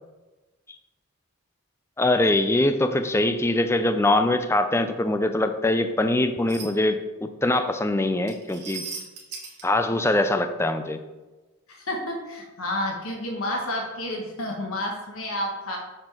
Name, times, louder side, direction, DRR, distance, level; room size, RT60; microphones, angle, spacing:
voice 1, 2.0-8.8 9.6-11.0, left 2 dB, 10° left, 8 dB, 0.4 m, -23 dB
sound 1, 6.5-6.7 8.3-9.6, right 5 dB, 50° right, 1.4 m, -36 dB
voice 2, 11.7-15.8, left 1 dB, 75° left, 0 dB, 1.4 m, -30 dB
6.4 x 4.5 x 5.7 m, 1.1 s
head